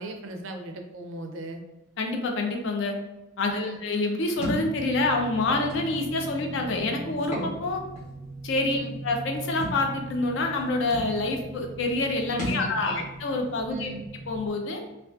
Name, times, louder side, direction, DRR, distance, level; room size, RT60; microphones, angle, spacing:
voice 1, 0.0-1.6 3.5-3.8 8.7-8.9 12.3-13.1 13.7-14.0, right 2 dB, 65° right, 4 dB, 0.3 m, -38 dB
voice 2, 2.0-2.9 3.4-7.8 8.4-8.8 9.0-13.9 14.3-14.8, left 2 dB, 60° left, 3 dB, 0.4 m, -27 dB
sound 1, 4.3-14.5, right 2 dB, 75° left, 1.0 m, -41 dB
Thump thud, 4.4-4.7 5.7-5.8 7.2-7.5 8.0-8.1 9.6-9.8 10.6-10.7 10.9-11.1 12.4-12.7, equal, 35° left, 0.7 m, -31 dB
sound 2, 5.4-7.9, right 1 dB, 10° right, 0.7 m, -45 dB
2.3 x 2.2 x 2.4 m, 0.99 s
head